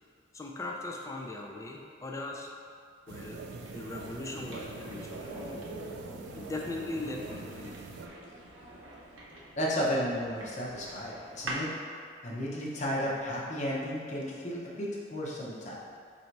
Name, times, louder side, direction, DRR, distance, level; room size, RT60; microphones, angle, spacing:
voice 1, 0.3-2.5 3.1-3.4 3.7-5.7 6.3-7.9, left 2 dB, 15° left, 0 dB, 0.4 m, -39 dB
sound 1, 3.1-8.1, right 4 dB, 65° right, 0.3 m, -45 dB
sound 2, 3.1-11.7, right 1 dB, 85° right, 0.7 m, -44 dB
voice 2, 9.6-11.7 12.2-15.7, equal, 40° left, -5 dB, 0.8 m, -33 dB
4.1 x 2.7 x 4.5 m, 2.2 s
head